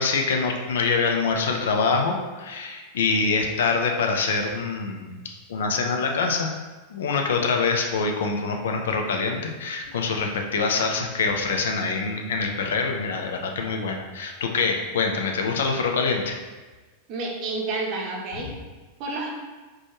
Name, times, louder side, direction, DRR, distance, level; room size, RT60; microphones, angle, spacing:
voice 1, 0.0-6.5 6.9-16.4 18.3-18.4, left 4 dB, 60° left, 3 dB, 0.5 m, -25 dB
voice 2, 17.1-18.5 19.0-19.3, right 3 dB, 40° right, -1 dB, 0.6 m, -29 dB
4.3 x 2.3 x 3.0 m, 1.3 s
figure-of-eight pair, 90°, 0 cm